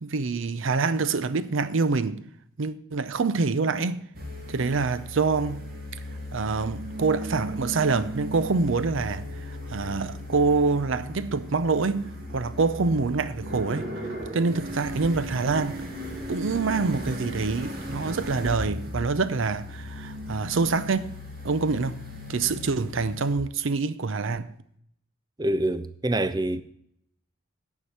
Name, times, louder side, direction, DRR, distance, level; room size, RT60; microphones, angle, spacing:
voice 1, 0.0-2.2 2.6-4.0 4.5-5.7 6.3-9.3 9.7-13.9 14.3-15.8 16.3-21.1 21.4-22.0 22.3-24.5, right 4 dB, 65° right, 0.6 m, -26 dB
sound 1, 4.1-23.3, left 1 dB, 45° right, 1.9 m, -37 dB
voice 2, 25.4-26.6, right 1 dB, 20° right, 0.4 m, -26 dB
10.0 x 4.7 x 7.9 m
head